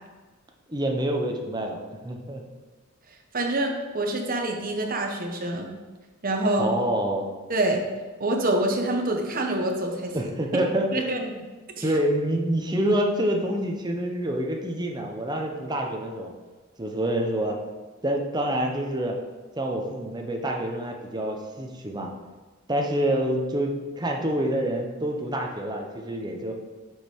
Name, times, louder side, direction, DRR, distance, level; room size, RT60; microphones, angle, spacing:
voice 1, 0.7-1.8 2.0-2.4 6.6-7.3 10.1-11.4 11.8-16.3 16.8-17.6 18.0-19.2 19.6-22.1 22.7-26.5, right 1 dB, 20° right, 1 dB, 1.0 m, -27 dB
voice 2, 3.3-5.7 6.2-6.7 7.5-7.8 8.2-10.3 10.9-11.2 11.8-11.9, right 1 dB, 45° right, 2 dB, 1.1 m, -26 dB
7.7 x 5.2 x 4.6 m, 1.3 s
head